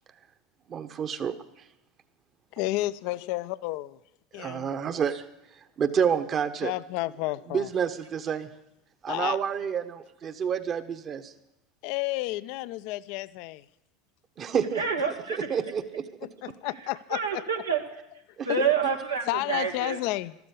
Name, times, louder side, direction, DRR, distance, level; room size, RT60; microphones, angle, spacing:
voice 1, 0.7-1.3 4.4-5.2 5.8-6.7 7.5-8.5 9.0-11.3 14.4-14.8 15.5-16.1 18.4-18.5, right 7 dB, 40° right, 1.3 m, -28 dB
voice 2, 2.5-4.0 4.3-5.0 6.6-7.7 9.1-9.4 11.8-13.6 16.4-17.6 18.5-18.6 19.3-20.4, left 18 dB, 60° left, 0.6 m, -31 dB
voice 3, 14.8-15.6 17.1-17.8 18.5-20.0, right 5 dB, 85° right, 1.8 m, -28 dB
13.0 x 13.0 x 8.4 m
hypercardioid pair, 75°, 0 cm